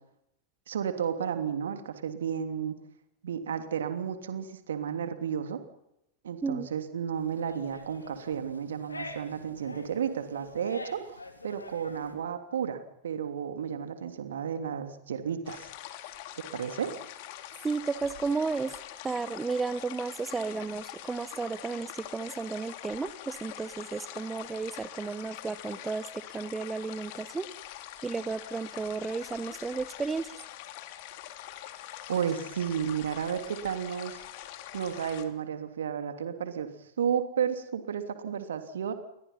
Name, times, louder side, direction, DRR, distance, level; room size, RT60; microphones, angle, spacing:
voice 1, 0.7-2.7 3.2-5.6 6.2-15.7 16.5-16.9 32.1-34.2 34.7-36.7 37.0-38.9, right 8 dB, 65° right, 8 dB, 3.1 m, -32 dB
sound 1, 7.1-12.1, left 2 dB, 80° left, 3.5 m, -46 dB
sound 2, 15.5-35.2, left 13 dB, 50° left, 2.7 m, -44 dB
voice 2, 17.6-18.7 19.0-26.1 26.3-27.5 28.0-30.4, right 4 dB, 15° right, 15 dB, 1.0 m, -33 dB
29.5 x 23.5 x 5.8 m, 0.82 s
figure-of-eight pair, 90°, 0 cm